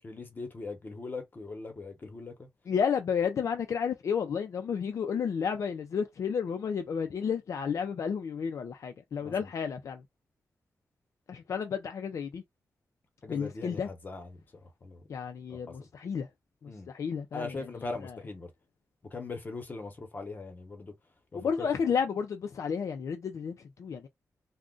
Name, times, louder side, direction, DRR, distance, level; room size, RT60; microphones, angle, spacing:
voice 1, 0.0-2.5 9.2-9.5 13.2-15.1 15.5-15.7 16.7-16.9 17.3-18.5 19.1-20.9 21.3-22.0, left 3 dB, 35° left, 0.8 m, -41 dB
voice 2, 2.7-10.0 11.3-12.4 13.3-13.9 15.1-16.3 16.6-18.2 21.3-24.1, left 6 dB, 60° left, 0.4 m, -32 dB
2.4 x 2.1 x 3.6 m
wide cardioid pair, 150°, 6 cm